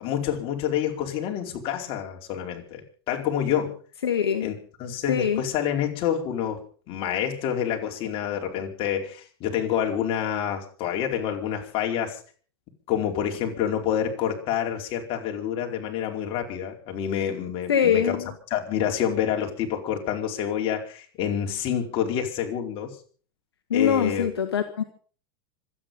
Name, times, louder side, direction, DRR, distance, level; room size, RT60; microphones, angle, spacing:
voice 1, 0.0-3.7 4.4-4.5 4.8-6.6 6.9-12.2 12.9-18.2 18.5-22.9 23.7-24.3, left 9 dB, 45° left, 3 dB, 4.7 m, -28 dB
voice 2, 4.0-4.5 5.1-5.4 17.7-18.3 23.7-24.8, left 8 dB, 80° left, 6 dB, 2.0 m, -23 dB
26.0 x 9.9 x 5.6 m, 0.43 s
hypercardioid pair, 95°, 13 cm